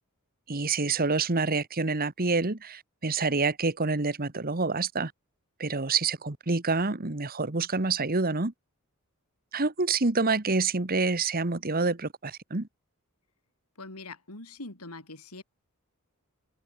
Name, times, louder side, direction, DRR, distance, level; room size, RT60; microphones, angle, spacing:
voice 1, 0.5-5.1 5.6-8.5 9.5-12.7, right 3 dB, 40° right, 1.5 m, -27 dB
voice 2, 13.8-15.4, left 2 dB, 90° left, 5.2 m, -43 dB
head